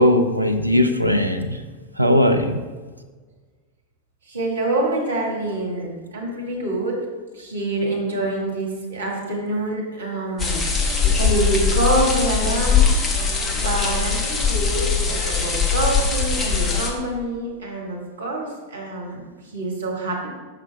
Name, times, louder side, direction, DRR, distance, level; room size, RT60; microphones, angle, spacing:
voice 1, 0.0-1.6 2.0-2.6, left 1 dB, 85° right, 6 dB, 0.5 m, -18 dB
voice 2, 4.3-7.0 7.3-10.6 11.0-12.9 13.5-19.2 19.5-20.3, right 1 dB, 70° right, -1 dB, 1.6 m, -26 dB
sound 1, 10.4-16.9, left 5 dB, 20° left, 1.0 m, -21 dB
6.0 x 5.8 x 3.4 m, 1.4 s
figure-of-eight pair, 90°, 0 cm